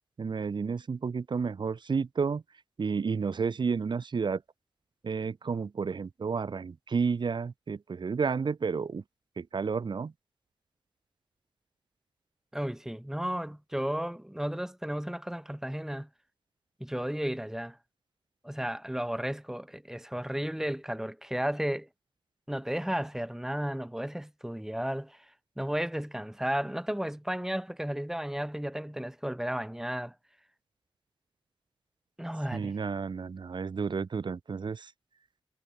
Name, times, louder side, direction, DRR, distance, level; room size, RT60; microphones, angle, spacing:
voice 1, 0.2-2.4 2.8-4.4 5.0-9.0 9.4-10.1 32.5-34.9, right 5 dB, 55° right, 3.1 m, -31 dB
voice 2, 12.5-16.1 16.8-17.8 18.4-21.9 22.5-25.3 25.6-30.1 32.2-32.7, equal, 5° right, 7.8 m, -33 dB
cardioid pair, 85°, 9 cm